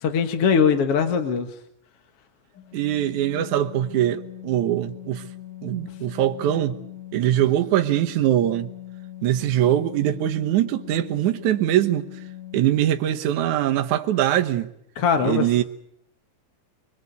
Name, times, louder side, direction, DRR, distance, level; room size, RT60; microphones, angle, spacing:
voice 1, 0.0-1.5 15.0-15.6, left 6 dB, 50° left, 2.3 m, -21 dB
Organ, 2.6-13.1, left 14 dB, 85° left, 3.6 m, -41 dB
voice 2, 2.7-5.2 5.6-6.8 7.1-8.7 9.2-12.1 12.5-14.7 15.2-15.6, right 12 dB, 70° right, 2.6 m, -22 dB
25.0 x 23.0 x 8.3 m
omnidirectional pair, 3.7 m